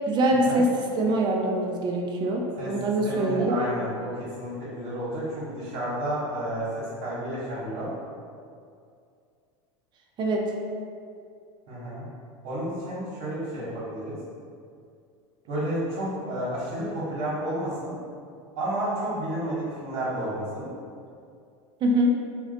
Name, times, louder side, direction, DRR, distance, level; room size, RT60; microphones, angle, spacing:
voice 1, 0.1-0.7 1.0-3.6 10.2-10.5 21.8-22.1, right 1 dB, 30° right, 0 dB, 0.4 m, -24 dB
voice 2, 3.0-7.9 11.7-12.1 12.4-14.2 15.5-18.0 18.6-20.7, right 1 dB, 70° right, -9 dB, 0.9 m, -31 dB
2.4 x 2.1 x 3.7 m, 2.3 s
supercardioid pair, 105°, 15 cm